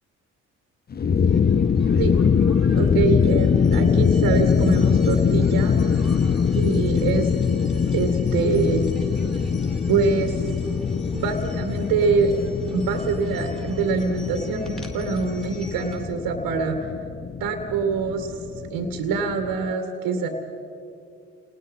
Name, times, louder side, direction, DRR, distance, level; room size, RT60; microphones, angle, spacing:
sound 1, 0.9-19.7, left 6 dB, 25° left, 0.6 m, -23 dB
sound 2, 1.2-16.1, left 1 dB, ahead, 4.3 m, -38 dB
voice 1, 2.7-5.8 6.6-7.3 7.9-8.9 9.9-10.4 11.1-12.4 12.7-16.9 17.4-18.3 18.7-20.3, right 4 dB, 70° right, 6 dB, 2.1 m, -24 dB
28.5 x 20.0 x 5.5 m, 2.6 s
hypercardioid pair, 55°, 36 cm